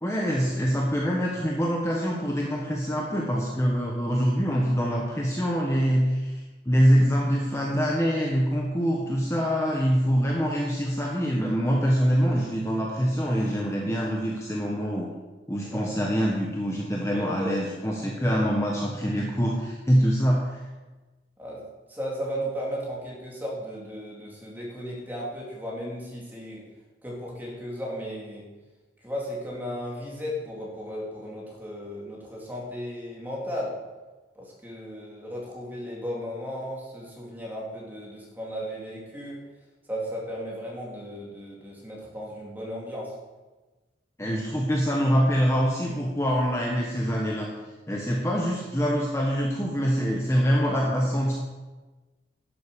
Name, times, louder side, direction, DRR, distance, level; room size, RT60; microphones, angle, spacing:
voice 1, 0.0-15.1 15.5-20.6 44.2-47.5 47.9-51.3, equal, 15° left, -2 dB, 1.3 m, -25 dB
voice 2, 15.6-15.9 17.0-17.6 21.4-26.6 27.0-28.5 29.0-33.7 34.3-39.4 39.9-43.1, equal, 10° right, -4 dB, 3.1 m, -35 dB
12.0 x 7.9 x 6.9 m, 1.2 s
head